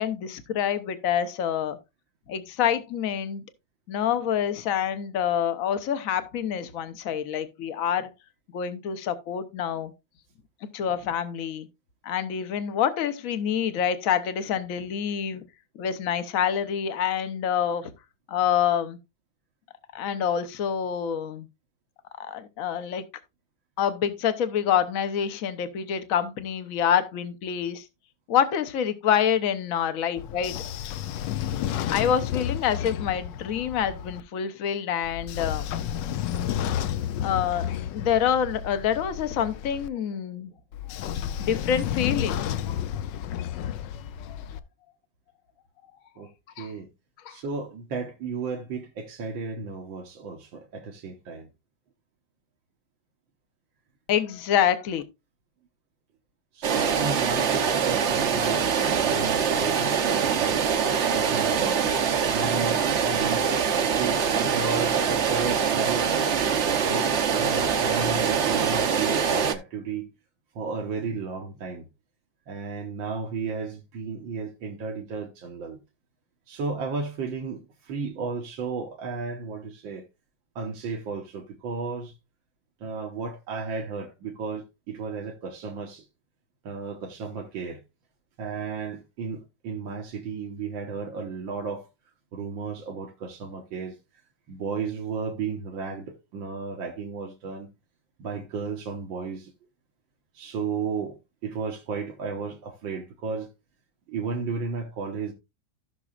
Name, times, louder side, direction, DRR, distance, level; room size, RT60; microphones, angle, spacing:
voice 1, 0.0-1.8 2.3-3.4 3.9-8.1 8.5-9.9 10.7-11.7 12.0-15.4 15.7-17.9 18.3-19.0 19.9-21.5 22.3-23.0 23.8-27.8 28.3-30.6 31.9-35.7 37.2-37.6 37.9-40.5 40.9-42.5 44.2-44.5 46.6-46.7 47.2-47.4 54.1-55.0, left 9 dB, 55° left, 1.1 m, -27 dB
Train / Sliding door, 30.2-34.2 35.0-39.9 40.7-44.6, left 10 dB, 75° left, 1.2 m, -31 dB
voice 2, 46.6-46.9 47.3-51.5 56.5-60.9 61.1-61.9 62.3-66.1 66.8-67.1 67.3-70.1 70.6-71.9 72.5-75.8 76.5-80.1 80.6-82.1 82.8-86.0 86.6-87.8 88.4-91.9 92.3-94.0 94.5-97.7 98.2-99.5 100.3-103.5 104.1-105.3, right 4 dB, 80° right, 1.9 m, -33 dB
sound 1, 56.6-69.5, right 7 dB, 55° right, 0.8 m, -24 dB
15.0 x 6.1 x 2.4 m
omnidirectional pair, 2.1 m